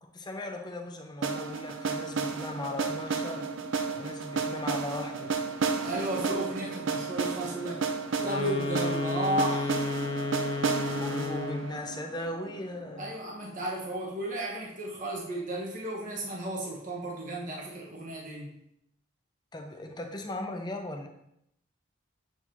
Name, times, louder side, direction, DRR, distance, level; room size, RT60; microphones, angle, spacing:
voice 1, 0.0-3.5 3.9-5.4 11.0-13.1 19.5-21.1, left 1 dB, 20° left, 4 dB, 0.6 m, -38 dB
sound 1, 1.2-13.1, right 5 dB, 70° right, 0.6 m, -32 dB
voice 2, 5.8-7.9 8.2-9.8 13.0-18.5, right 1 dB, 40° right, -3 dB, 1.2 m, -34 dB
sound 2, 8.1-11.8, left 3 dB, 70° left, 0.7 m, -32 dB
7.4 x 4.8 x 2.8 m, 0.77 s
head